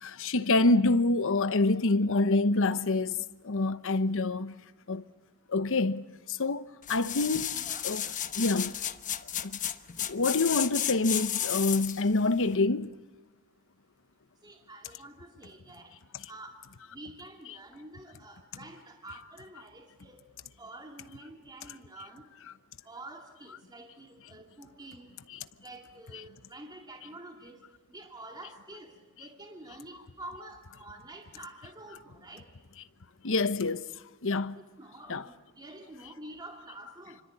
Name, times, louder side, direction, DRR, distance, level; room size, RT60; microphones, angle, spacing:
voice 1, 0.0-4.5 4.9-5.0 5.5-6.6 6.9-8.1 8.3-8.8 9.4-9.6 10.1-12.9 30.4-30.5 33.2-33.8 34.2-34.6 35.1-35.3, left 2 dB, 65° left, 1.0 m, -27 dB
sound 1, 6.8-12.1 12.5-12.6, left 10 dB, 35° left, 1.0 m, -33 dB
voice 2, 7.5-7.8 14.4-15.9 16.3-16.6 16.9-20.2 20.6-22.2 22.8-25.2 25.6-27.6 27.9-32.5 34.5-37.2, right 2 dB, 20° right, 2.3 m, -48 dB
27.5 x 25.5 x 8.5 m
head